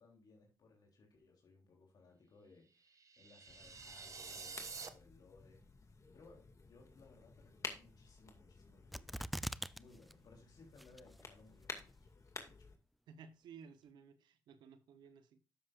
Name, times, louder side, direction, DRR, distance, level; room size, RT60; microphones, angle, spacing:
voice 1, 0.0-5.6 6.1-9.2 9.7-12.1 12.4-12.7, left 3 dB, 70° left, 3.2 m, -63 dB
sound 1, 2.9-4.9, right 5 dB, 45° right, 1.3 m, -49 dB
sound 2, 3.4-12.8, left 4 dB, 45° left, 2.1 m, -53 dB
sound 3, 8.9-9.8 10.1-10.2 10.8-11.2 11.8-11.9, equal, ahead, 0.4 m, -41 dB
voice 2, 13.1-15.4, right 6 dB, 90° right, 1.0 m, -57 dB
11.5 x 7.7 x 2.5 m
cardioid pair, 60°, 7 cm